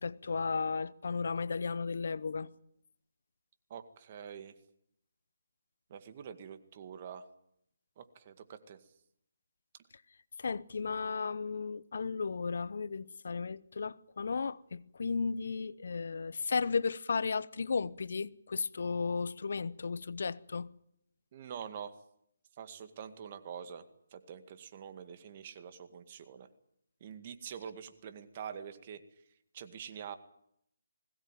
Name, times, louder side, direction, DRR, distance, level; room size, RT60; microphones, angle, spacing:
voice 1, 0.0-2.5 10.4-20.7, left 5 dB, 65° left, 0.9 m, -34 dB
voice 2, 3.7-4.6 5.9-7.3 8.0-8.8 21.3-22.0 22.6-23.8 24.1-26.5 27.0-29.0 29.5-30.2, right 8 dB, 35° right, 2.0 m, -45 dB
21.5 x 17.5 x 9.3 m
hypercardioid pair, 160°, 0 cm